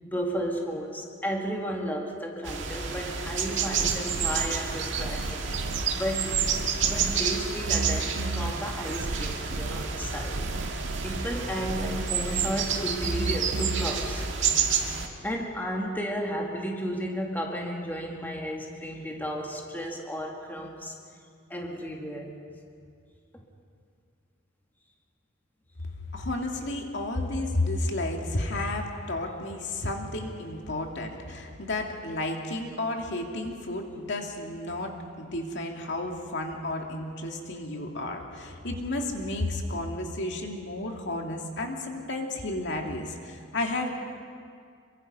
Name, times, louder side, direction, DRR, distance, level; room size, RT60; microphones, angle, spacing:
voice 1, 0.0-5.5 5.9-6.4 6.8-10.4 11.0-14.3 15.2-20.9 21.5-22.3 23.3-23.5, equal, 10° left, 0 dB, 2.1 m, -33 dB
sound 1, 2.5-15.1, right 6 dB, 65° right, 2.1 m, -30 dB
sound 2, 3.7-14.3, right 3 dB, 80° right, 0.7 m, -35 dB
voice 2, 26.1-43.9, left 2 dB, 65° left, 2 dB, 2.5 m, -32 dB
27.0 x 23.5 x 5.5 m, 2.3 s
head